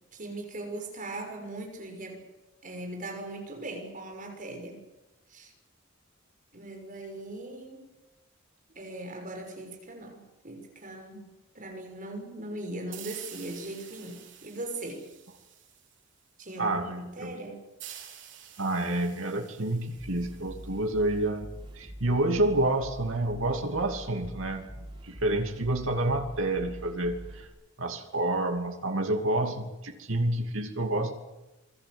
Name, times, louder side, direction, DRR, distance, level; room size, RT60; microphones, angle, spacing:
voice 1, 0.1-2.3 2.6-4.8 5.3-5.5 6.5-7.8 8.7-15.1 16.4-17.6, right 2 dB, 40° right, 3 dB, 6.1 m, -39 dB
sound 1, 12.9-16.3 17.8-21.3, right 10 dB, 65° right, 4.5 m, -49 dB
voice 2, 16.6-17.4 18.6-21.5 21.7-24.6 25.0-27.5 27.8-31.1, right 1 dB, 80° right, 4 dB, 2.7 m, -28 dB
sound 2, 20.0-27.5, equal, 25° right, 6.9 m, -44 dB
27.5 x 21.0 x 8.1 m, 1.0 s
head